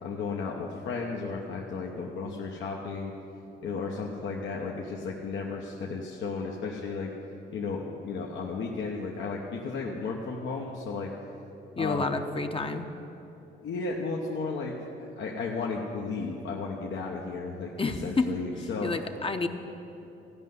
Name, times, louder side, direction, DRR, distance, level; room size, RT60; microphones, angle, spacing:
voice 1, 0.0-3.1 3.6-7.1 7.5-11.1 11.7-12.2 13.6-14.7 15.2-17.7 18.0-18.9, left 4 dB, 70° left, -2 dB, 1.1 m, -34 dB
voice 2, 11.7-12.9 17.8-18.3 18.8-19.5, left 3 dB, 25° left, 6 dB, 0.8 m, -29 dB
14.5 x 5.5 x 9.4 m, 3.0 s
supercardioid pair, 65°, 20 cm